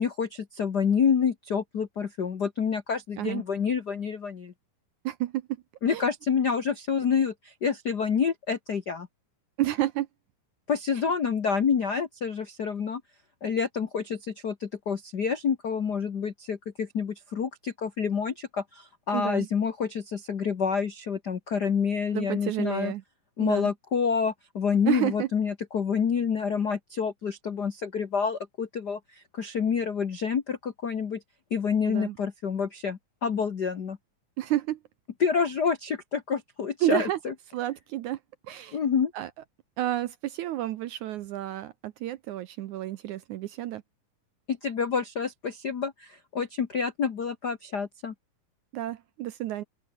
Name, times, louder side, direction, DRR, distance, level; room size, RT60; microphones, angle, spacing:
voice 1, 0.0-4.5 5.8-9.1 10.7-13.0 13.4-22.9 23.4-31.2 31.5-34.0 35.2-37.3 38.7-39.1 44.5-48.1, left 6 dB, 80° left, 0.9 m, -28 dB
voice 2, 5.0-5.5 5.9-6.0 9.6-10.1 11.0-11.1 19.1-19.5 22.1-23.0 23.4-23.7 24.9-25.3 31.9-32.2 34.4-34.8 36.8-37.2 37.5-38.2 38.5-38.8 39.1-39.3 39.8-43.8 48.7-49.6, right 14 dB, 75° right, 1.9 m, -30 dB
open air
omnidirectional pair, 4.1 m